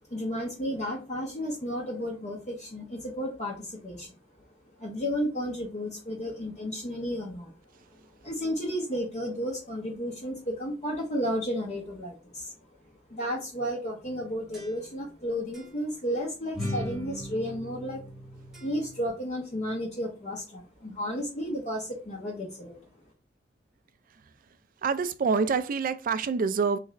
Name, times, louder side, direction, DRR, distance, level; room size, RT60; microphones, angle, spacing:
voice 1, 0.1-4.2 4.8-7.5 8.2-12.5 13.1-18.0 18.6-22.9, equal, 40° left, 0.8 m, -33 dB
sound 1, 14.0-15.2 15.5-15.7 16.5-19.1, equal, 5° right, 1.1 m, -39 dB
voice 2, 24.8-26.8, right 5 dB, 50° right, 0.3 m, -26 dB
3.1 x 2.5 x 3.8 m
head